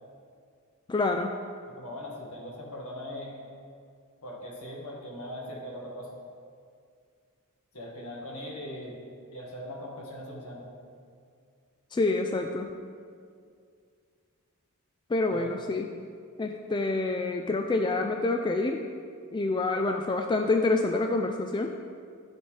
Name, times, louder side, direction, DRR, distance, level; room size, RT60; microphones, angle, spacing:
voice 1, 0.9-1.4 11.9-12.7 15.1-15.9 16.4-18.8 19.3-21.8, left 2 dB, 20° left, 4 dB, 0.3 m, -27 dB
voice 2, 1.8-3.4 4.2-6.2 7.7-9.0 9.3-10.7 15.3-15.6, left 1 dB, 70° left, -2 dB, 1.7 m, -40 dB
11.0 x 7.2 x 3.2 m, 2.2 s
head